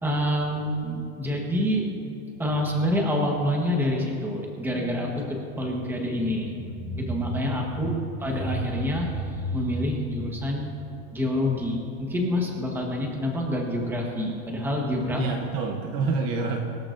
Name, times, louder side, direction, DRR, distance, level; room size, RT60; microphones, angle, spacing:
voice 1, 0.0-1.9 2.4-7.9 8.2-10.7 11.1-15.2, left 1 dB, 5° right, -1 dB, 1.2 m, -27 dB
voice 2, 7.7-8.2 15.2-16.6, right 4 dB, 35° right, 3 dB, 0.9 m, -28 dB
23.0 x 13.5 x 2.6 m, 2.7 s
supercardioid pair, 175°, 41 cm